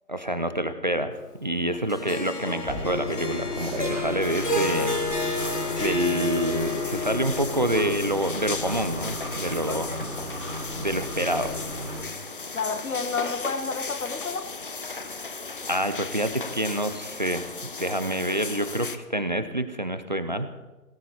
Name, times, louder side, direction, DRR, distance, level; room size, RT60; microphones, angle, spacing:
voice 1, 0.1-1.1 1.4-5.0 5.8-9.9 10.8-11.5 15.7-17.5 17.8-20.5, right 1 dB, 30° right, 0.7 m, -27 dB
Harp, 1.9-8.3, left 3 dB, 80° left, 2.6 m, -30 dB
sound 1, 2.6-12.0, equal, 10° right, 2.9 m, -34 dB
sound 2, 4.2-19.0, left 4 dB, 35° left, 0.8 m, -36 dB
voice 2, 9.7-10.0 12.5-14.5, left 4 dB, 60° left, 1.3 m, -30 dB
18.0 x 15.5 x 4.3 m
figure-of-eight pair, 155°, 46 cm